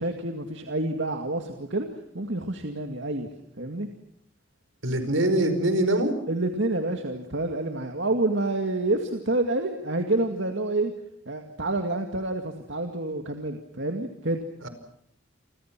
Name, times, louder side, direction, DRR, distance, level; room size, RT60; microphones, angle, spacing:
voice 1, 0.0-1.9 2.1-3.3 3.6-3.9 6.3-10.9 11.3-14.5, right 2 dB, 65° right, 4 dB, 2.2 m, -28 dB
voice 2, 4.8-6.1 14.6-14.7, right 1 dB, 85° right, 10 dB, 4.9 m, -23 dB
29.5 x 26.0 x 6.1 m, 0.71 s
head